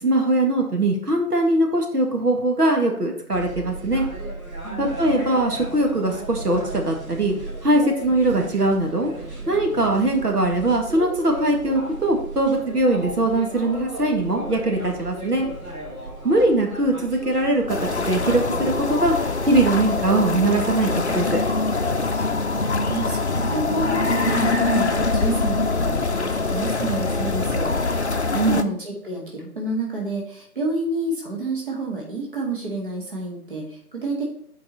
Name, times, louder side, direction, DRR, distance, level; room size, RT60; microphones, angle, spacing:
voice 1, 0.0-4.1 4.8-7.3 7.6-9.1 9.5-15.5 16.2-21.4 28.3-28.6, right 2 dB, 80° right, 2 dB, 2.0 m, -21 dB
sound 1, 3.3-18.9, right 1 dB, 60° right, 3.4 m, -35 dB
voice 2, 4.6-5.3 22.4-28.1 28.4-34.3, right 2 dB, 35° right, -2 dB, 1.6 m, -29 dB
sound 2, 17.7-28.6, left 3 dB, 45° left, 0.6 m, -23 dB
8.0 x 4.8 x 4.3 m, 0.67 s
figure-of-eight pair, 165°, 46 cm